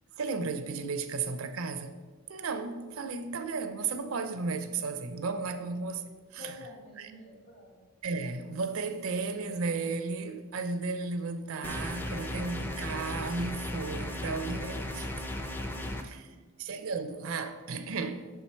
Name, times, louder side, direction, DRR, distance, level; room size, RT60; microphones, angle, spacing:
voice 1, 0.2-2.0 2.3-6.6 7.0-7.1 8.0-15.1 16.0-18.3, right 4 dB, 70° right, 0.5 m, -34 dB
voice 2, 6.4-7.8 15.7-16.6, left 2 dB, 65° left, 1.9 m, -50 dB
sound 1, 11.6-16.0, left 1 dB, 10° left, 0.4 m, -36 dB
6.3 x 4.5 x 4.4 m
head